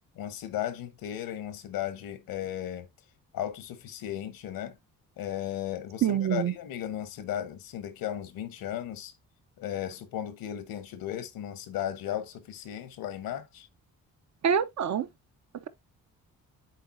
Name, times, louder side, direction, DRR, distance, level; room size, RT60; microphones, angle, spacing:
voice 1, 0.2-2.9 3.3-4.8 5.2-9.1 9.6-13.7, left 11 dB, 80° left, 1.1 m, -35 dB
voice 2, 6.0-6.5 14.4-15.1, right 8 dB, 50° right, 0.9 m, -25 dB
9.7 x 4.0 x 2.6 m
supercardioid pair, 60°, 35 cm